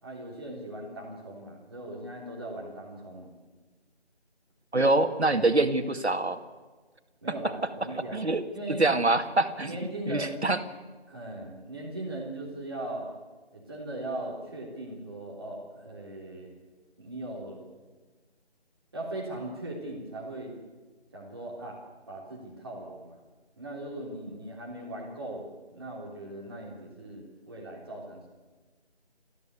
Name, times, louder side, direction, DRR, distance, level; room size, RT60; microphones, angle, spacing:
voice 1, 0.0-3.3 7.2-9.0 9.6-10.5 11.1-13.1 13.5-16.5 17.0-17.6 18.9-20.5 21.1-21.8 22.1-23.2 23.6-25.4 25.7-28.3, right 1 dB, 25° right, -3 dB, 3.7 m, -39 dB
voice 2, 4.7-6.4 8.1-8.4 8.7-9.8 10.1-10.6, right 2 dB, 75° right, 8 dB, 2.2 m, -25 dB
30.0 x 13.5 x 8.3 m, 1.3 s
figure-of-eight pair, 170°, 33 cm